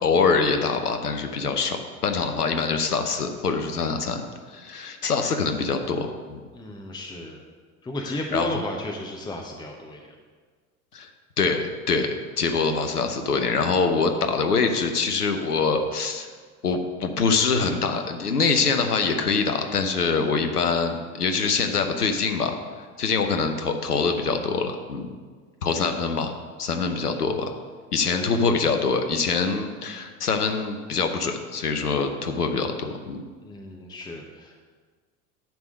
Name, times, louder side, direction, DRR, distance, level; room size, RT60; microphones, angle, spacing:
voice 1, 0.0-4.2 4.5-6.4 8.3-8.5 10.9-11.1 11.4-16.3 16.6-22.5 23.0-25.1 25.6-27.5 27.9-33.2, left 4 dB, 80° left, 6 dB, 0.8 m, -24 dB
voice 2, 6.5-7.4 7.8-10.1 25.6-26.1 28.1-28.5 33.4-34.6, left 1 dB, 10° left, 1 dB, 0.8 m, -34 dB
10.5 x 3.6 x 6.4 m, 1.5 s
figure-of-eight pair, 70°, 45 cm